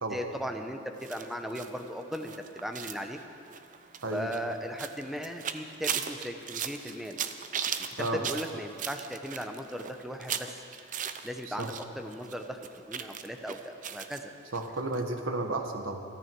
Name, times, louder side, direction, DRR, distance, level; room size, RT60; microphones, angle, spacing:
voice 1, 0.1-3.2 4.1-7.2 8.0-10.6 11.2-12.6 12.9-14.3, equal, ahead, 5 dB, 0.8 m, -37 dB
sound 1, 1.0-11.8 12.1-14.2 14.5-14.7 14.9-15.0, right 8 dB, 40° right, 0.6 m, -38 dB
voice 2, 14.5-16.0, right 2 dB, 85° right, 4 dB, 1.5 m, -32 dB
27.5 x 9.6 x 4.6 m, 2.6 s
head